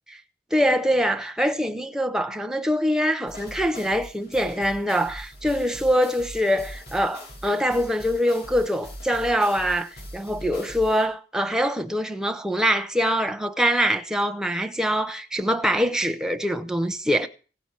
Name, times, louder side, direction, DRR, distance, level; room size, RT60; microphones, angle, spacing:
voice 1, 0.5-17.3, equal, 5° right, 0.8 m, -24 dB
sound 1, 3.3-11.1, equal, 70° left, 7.1 m, -41 dB
16.5 x 8.9 x 6.1 m
head